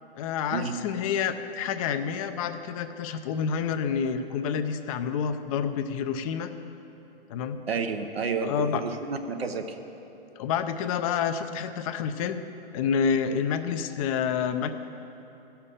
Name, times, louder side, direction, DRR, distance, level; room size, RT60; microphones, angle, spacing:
voice 1, 0.1-6.5 7.3-7.6 8.4-8.8 10.4-12.4 12.7-14.7, left 7 dB, 35° left, 9 dB, 0.6 m, -28 dB
voice 2, 7.7-9.8, right 5 dB, 90° right, 6 dB, 1.0 m, -30 dB
14.5 x 5.8 x 6.7 m, 2.9 s
hypercardioid pair, 125°, 29 cm